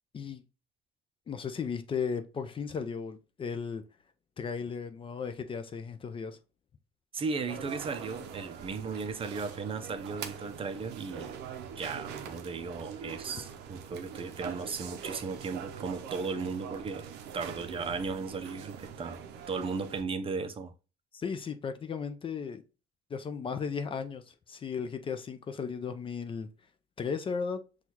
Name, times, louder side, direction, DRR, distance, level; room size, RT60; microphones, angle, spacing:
voice 1, 1.3-3.8 4.4-6.4 21.1-22.6 23.1-26.5 27.0-27.6, left 6 dB, 30° left, 0.4 m, -35 dB
voice 2, 7.1-11.3 11.8-17.1 17.3-20.7, right 4 dB, 35° right, 0.5 m, -36 dB
sound 1, 7.5-20.0, right 7 dB, 80° right, 0.5 m, -43 dB
6.0 x 2.3 x 2.8 m
cardioid pair, 110°, 17 cm